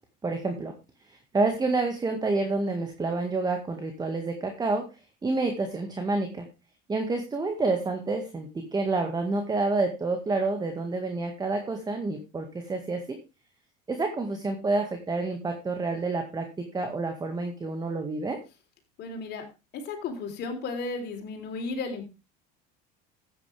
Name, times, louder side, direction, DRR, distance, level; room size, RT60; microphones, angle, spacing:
voice 1, 0.2-0.7 1.1-4.9 5.2-6.5 6.9-13.2 13.9-18.4, right 3 dB, 20° right, 5 dB, 1.9 m, -28 dB
voice 2, 19.0-19.4 19.7-22.1, left 3 dB, 55° left, 4 dB, 4.0 m, -34 dB
14.0 x 9.3 x 3.5 m, 0.28 s
supercardioid pair, 110°, 21 cm